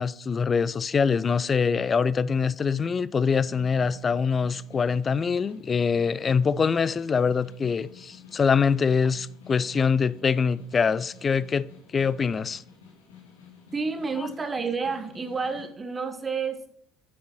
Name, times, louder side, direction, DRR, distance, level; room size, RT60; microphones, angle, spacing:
voice 1, 0.0-12.6, left 6 dB, 30° left, 0.3 m, -24 dB
Snare drum, 3.0-15.7, left 7 dB, 70° left, 1.8 m, -51 dB
voice 2, 13.7-16.7, right 4 dB, 25° right, 1.1 m, -30 dB
9.2 x 6.4 x 2.9 m
figure-of-eight pair, 60°, 0 cm